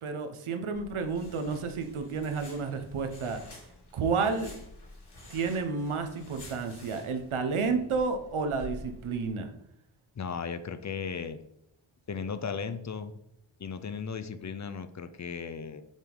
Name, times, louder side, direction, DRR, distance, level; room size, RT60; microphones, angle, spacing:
voice 1, 0.0-3.4 3.9-4.5 5.3-9.5, right 4 dB, 85° right, 7 dB, 0.8 m, -31 dB
cortina de baño, 0.7-9.3, left 2 dB, 55° left, 2.0 m, -49 dB
voice 2, 10.2-11.4 12.1-13.2 13.6-15.8, left 6 dB, 40° left, 11 dB, 0.4 m, -36 dB
7.2 x 3.6 x 3.8 m, 0.77 s
wide cardioid pair, 70°, 48 cm